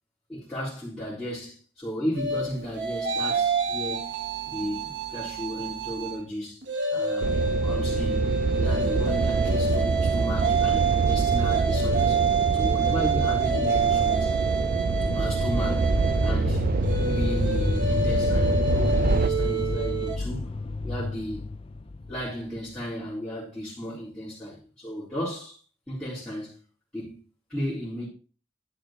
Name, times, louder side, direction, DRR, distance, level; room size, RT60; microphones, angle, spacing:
voice 1, 0.3-4.1 4.5-6.6 6.9-8.3 8.6-12.2 12.5-14.4 15.1-15.9 16.2-16.7 17.0-20.5 20.8-21.5 22.1-25.6 25.9-26.6 26.9-27.2 27.5-28.1, equal, 5° left, 4.3 m, -34 dB
sound 1, 2.2-6.2 6.6-20.2, right 4 dB, 70° right, 2.2 m, -27 dB
sound 2, 7.2-19.3, right 4 dB, 50° right, 0.4 m, -26 dB
sound 3, 13.6-22.8, left 3 dB, 30° left, 0.5 m, -30 dB
11.5 x 6.4 x 4.5 m
head